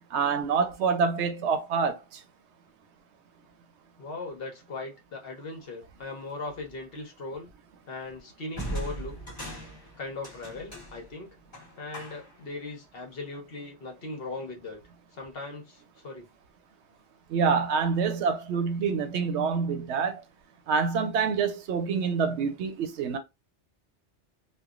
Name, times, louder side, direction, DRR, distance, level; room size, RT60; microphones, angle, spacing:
voice 1, 0.1-2.0 17.3-20.2 20.7-23.2, right 5 dB, 75° right, 0.9 m, -26 dB
voice 2, 4.0-7.5 7.9-9.2 10.0-11.4 11.8-14.8 15.1-16.3, left 3 dB, 60° left, 1.0 m, -39 dB
sound 1, 6.5-6.7 8.5-12.5, right 1 dB, 25° left, 1.2 m, -39 dB
3.1 x 2.2 x 2.4 m
omnidirectional pair, 1.2 m